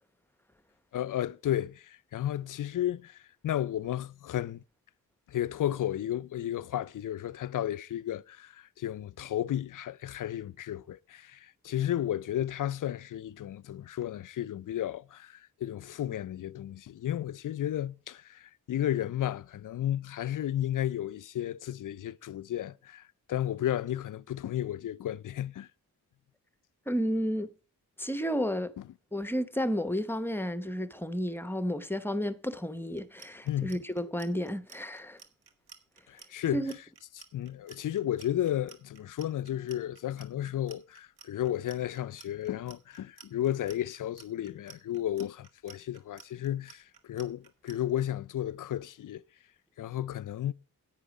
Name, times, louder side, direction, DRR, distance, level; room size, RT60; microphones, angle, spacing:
voice 1, 0.9-4.6 5.3-25.7 28.8-28.9 33.5-33.8 36.1-36.6 37.3-49.2 49.8-50.5, left 12 dB, 55° left, 0.5 m, -33 dB
voice 2, 26.9-27.5 28.0-28.7 29.1-35.2 36.5-36.7, equal, 5° left, 0.8 m, -32 dB
Clock, 32.9-47.8, right 7 dB, 75° right, 1.5 m, -53 dB
10.5 x 8.9 x 4.9 m
cardioid pair, 85°, 38 cm